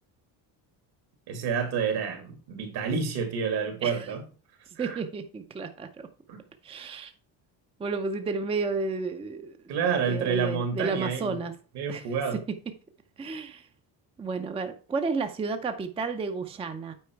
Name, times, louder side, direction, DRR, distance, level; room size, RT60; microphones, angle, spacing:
voice 1, 1.3-4.2 4.8-5.0 6.3-6.4 9.7-11.4 11.7-12.4, right 6 dB, 70° right, 2.4 m, -29 dB
voice 2, 3.8-4.1 4.8-5.9 6.6-7.1 7.8-9.6 10.1-11.5 11.9-12.1 13.2-13.7 14.2-16.9, right 4 dB, 15° right, 0.5 m, -31 dB
8.4 x 4.7 x 4.5 m
cardioid pair, 165°, 41 cm